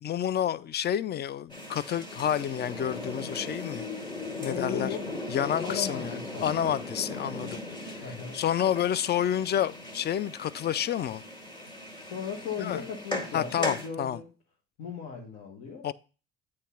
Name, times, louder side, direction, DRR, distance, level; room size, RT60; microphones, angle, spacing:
voice 1, 0.0-3.9 4.4-4.9 5.3-8.0 8.3-11.2 12.6-12.8 13.3-14.2 15.8-15.9, left 10 dB, 35° left, 0.4 m, -29 dB
sound 1, 1.5-13.9, left 2 dB, 15° left, 1.9 m, -38 dB
voice 2, 4.4-5.1 5.6-6.7 8.0-8.4 12.0-14.3 14.8-15.9, left 7 dB, 75° left, 1.4 m, -37 dB
8.2 x 3.2 x 5.6 m
supercardioid pair, 70°, 29 cm